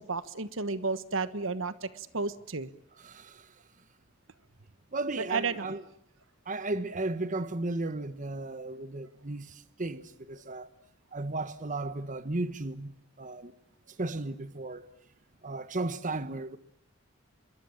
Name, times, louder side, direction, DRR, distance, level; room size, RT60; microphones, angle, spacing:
voice 1, 0.0-2.7 5.3-5.7, right 4 dB, 75° right, 1.3 m, -32 dB
voice 2, 3.0-3.4 4.9-5.8 6.5-9.5 9.8-10.7 11.1-13.5 14.0-14.9 15.4-16.6, right 2 dB, 40° right, 1.3 m, -35 dB
26.5 x 22.5 x 8.7 m
head